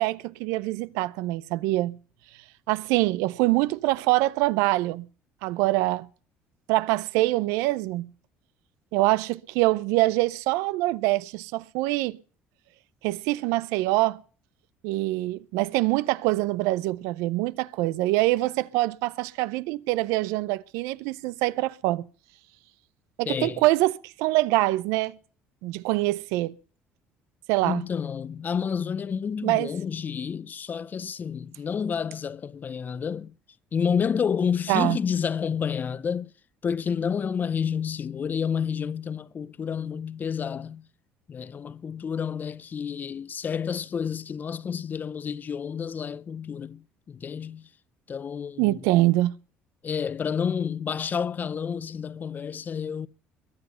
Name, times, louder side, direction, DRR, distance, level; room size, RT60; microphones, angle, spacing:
voice 1, 0.0-2.0 2.7-5.1 5.4-6.1 6.7-8.1 8.9-12.2 13.0-14.2 14.8-22.0 23.2-25.2 25.6-26.5 27.5-27.8 29.4-29.7 34.7-35.0 48.6-49.3, right 18 dB, 85° right, 0.5 m, -24 dB
voice 2, 23.2-23.6 27.6-33.3 33.7-36.3 36.6-40.8 41.3-47.7 48.1-48.8 49.8-53.1, left 7 dB, 40° left, 0.6 m, -29 dB
21.5 x 8.0 x 5.6 m
supercardioid pair, 85°, 5 cm